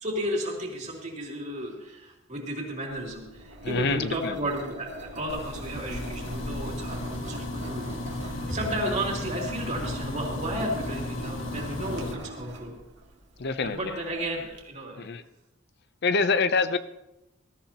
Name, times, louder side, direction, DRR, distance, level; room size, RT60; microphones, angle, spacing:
voice 1, 0.0-12.7 13.6-15.0, right 1 dB, 35° right, -1 dB, 2.8 m, -33 dB
Engine, 2.9-14.6, right 1 dB, 60° right, 1.9 m, -43 dB
voice 2, 3.6-4.4 13.4-14.0 15.0-15.2 16.0-16.8, left 4 dB, 55° left, 12 dB, 0.6 m, -26 dB
sound 1, 5.3-12.1, left 1 dB, 75° left, 1.4 m, -35 dB
20.0 x 13.5 x 2.9 m, 0.93 s
head